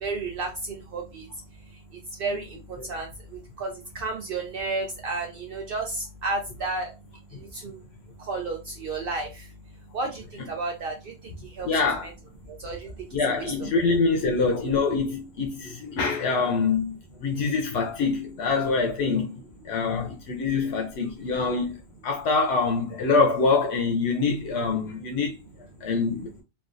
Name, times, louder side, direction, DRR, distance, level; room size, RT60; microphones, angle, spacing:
voice 1, 0.0-1.2 2.2-2.6 2.9-3.1 3.6-6.9 7.5-7.8 8.3-9.4 9.9-10.2 10.5-10.9 11.6-11.7 12.0-12.1 12.6-12.9 13.3-13.5, right 3 dB, 65° right, 0.8 m, -31 dB
voice 2, 11.6-12.1 13.1-21.8 22.0-25.4 25.8-26.3, left 4 dB, 80° left, 0.9 m, -25 dB
3.2 x 2.2 x 2.4 m
omnidirectional pair, 1.1 m